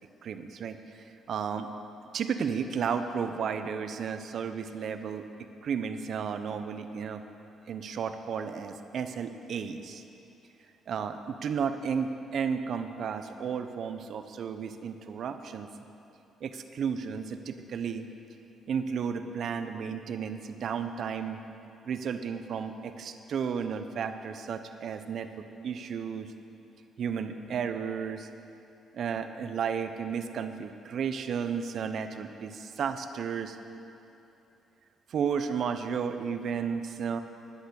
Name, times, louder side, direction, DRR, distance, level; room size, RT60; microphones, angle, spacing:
voice 1, 0.2-1.7 2.1-5.2 5.6-7.2 7.7-10.0 10.9-15.7 16.4-18.1 18.7-21.4 21.9-25.3 25.6-26.3 27.0-28.3 28.9-33.6 35.1-37.2, right 6 dB, 65° right, 8 dB, 0.8 m, -33 dB
11.5 x 11.5 x 6.4 m, 2.8 s
cardioid pair, 80°, 0 cm